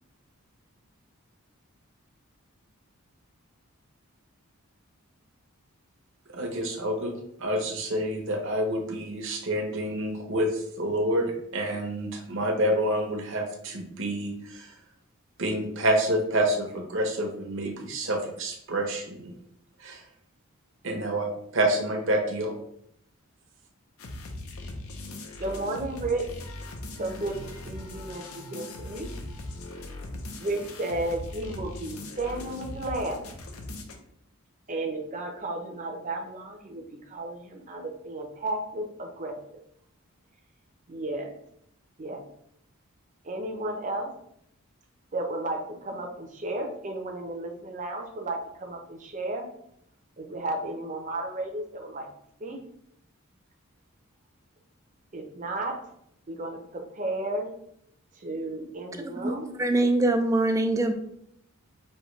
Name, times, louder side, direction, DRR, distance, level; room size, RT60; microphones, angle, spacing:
voice 1, 6.3-7.1 7.4-11.2 11.5-14.7 15.4-19.3 19.8-20.0 20.8-22.5, right 1 dB, 60° right, 2 dB, 1.0 m, -28 dB
sound 1, 24.0-34.0, left 2 dB, 75° left, 0.7 m, -40 dB
voice 2, 25.4-26.3 27.0-27.4 27.6-29.1 30.4-33.2 34.7-39.3 40.9-41.3 42.0-42.2 43.2-44.1 45.1-49.4 50.2-52.1 52.4-52.6 55.1-55.7 56.3-57.5 58.2-59.5, right 2 dB, 35° right, 2 dB, 0.7 m, -33 dB
voice 3, 59.2-60.9, right 2 dB, 15° right, 6 dB, 0.3 m, -23 dB
5.5 x 2.8 x 3.1 m, 0.71 s
head